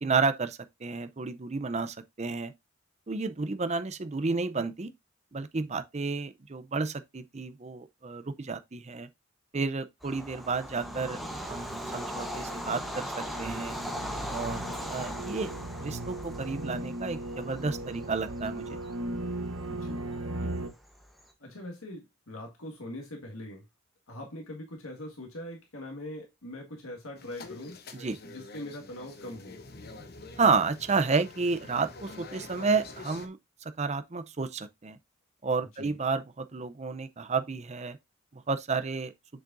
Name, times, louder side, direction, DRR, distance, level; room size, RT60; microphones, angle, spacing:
voice 1, 0.0-2.5 3.1-4.9 5.3-9.1 9.5-11.2 11.5-13.8 14.3-14.6 14.9-15.5 15.8-18.8 20.3-20.6 28.0-28.2 30.4-35.0 35.4-38.0 38.3-39.1, right 4 dB, 30° right, 0.6 m, -31 dB
Bird vocalization bird call bird song / Train, 10.0-21.2, equal, ahead, 1.0 m, -39 dB
sound 1, 10.7-20.7, right 1 dB, 90° right, 1.1 m, -38 dB
voice 2, 19.7-20.1 21.4-23.6 24.1-27.8 28.2-29.6 35.7-36.0, left 1 dB, 90° left, 1.8 m, -42 dB
sound 2, 27.2-33.3, left 3 dB, 50° left, 1.0 m, -46 dB
7.3 x 6.4 x 2.6 m
head